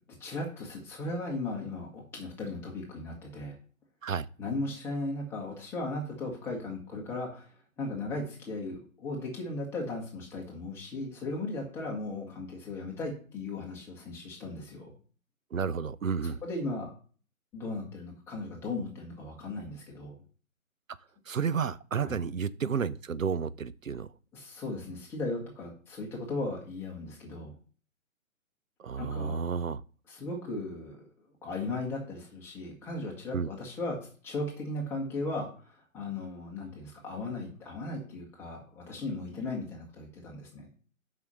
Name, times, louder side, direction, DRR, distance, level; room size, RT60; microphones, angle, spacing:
voice 1, 0.2-3.5 4.4-7.5 7.8-14.9 16.4-16.9 17.5-20.2 22.0-22.2 24.3-27.5 29.0-29.4 30.1-31.0 31.4-40.7, left 2 dB, 5° left, 1.3 m, -37 dB
voice 2, 15.5-16.4 21.3-24.1 28.8-29.8 33.3-33.5, right 6 dB, 70° right, 0.7 m, -31 dB
6.8 x 5.6 x 6.8 m
figure-of-eight pair, 140°, 41 cm